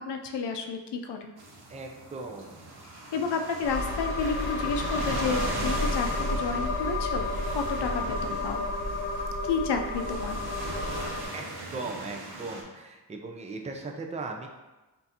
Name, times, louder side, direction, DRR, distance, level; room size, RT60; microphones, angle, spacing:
voice 1, 0.1-1.3 3.1-8.7 9.4-10.4, left 4 dB, 75° left, 4 dB, 0.6 m, -31 dB
sound 1, 1.4-12.6, right 2 dB, 65° right, 0.9 m, -39 dB
voice 2, 1.7-2.5 11.2-11.5 11.7-14.5, right 3 dB, 15° right, 2 dB, 0.5 m, -38 dB
sound 2, 3.6-11.3, left 2 dB, 30° left, 0.5 m, -31 dB
5.5 x 2.7 x 2.8 m, 1.1 s
cardioid pair, 80°, 42 cm